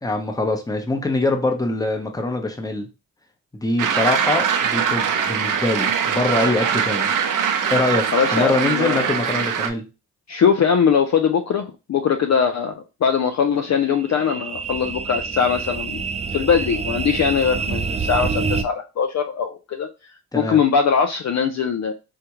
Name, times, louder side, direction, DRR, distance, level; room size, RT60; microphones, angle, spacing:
voice 1, 0.0-2.9 3.5-7.1 7.7-9.8 20.3-20.6, left 2 dB, 10° left, 3 dB, 0.8 m, -23 dB
sound 1, 3.8-9.7, right 7 dB, 55° right, 0.6 m, -22 dB
voice 2, 8.1-9.1 10.3-12.7 13.0-21.9, left 7 dB, 45° left, 5 dB, 0.5 m, -21 dB
sound 2, 13.6-18.6, right 5 dB, 20° right, 0.3 m, -27 dB
3.5 x 2.2 x 3.0 m, 0.29 s
supercardioid pair, 45°, 39 cm